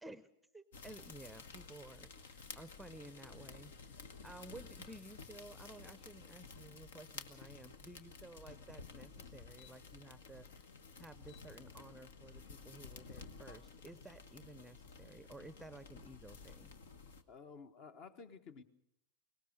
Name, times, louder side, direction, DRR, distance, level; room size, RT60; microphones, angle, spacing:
voice 1, 0.5-10.7 11.0-16.7, right 1 dB, 5° right, 15 dB, 0.8 m, -54 dB
sound 1, 0.7-17.2, left 4 dB, 60° left, 1.4 m, -53 dB
voice 2, 17.3-18.6, left 5 dB, 40° left, 11 dB, 1.4 m, -53 dB
23.0 x 19.0 x 6.6 m, 0.78 s
figure-of-eight pair, 90°, 0 cm